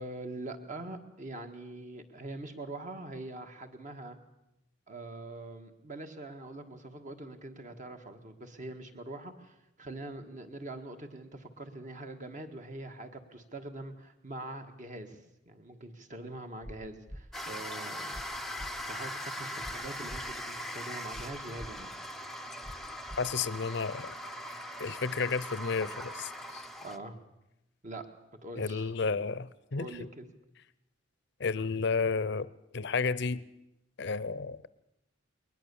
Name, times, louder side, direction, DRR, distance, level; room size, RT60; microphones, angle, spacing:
voice 1, 0.0-4.2 4.9-15.2 15.5-18.2 18.9-21.9 26.8-27.2 27.8-28.1 28.4-29.2 29.8-30.3, right 2 dB, 40° right, 6 dB, 1.7 m, -43 dB
sound 1, 16.6-16.8 17.1-17.2 18.1-18.3 18.6-18.7 19.6-19.8 20.1-20.2 21.1-21.3 21.6-21.7 22.6-22.8 23.1-23.2, equal, 25° right, 1.6 m, -43 dB
sound 2, 17.3-27.0, equal, ahead, 0.7 m, -40 dB
voice 2, 23.2-24.1 24.5-26.7 28.5-29.9 31.4-32.5 32.7-33.4 34.0-34.6, left 4 dB, 60° left, 18 dB, 0.7 m, -32 dB
21.5 x 19.5 x 7.0 m, 0.87 s
head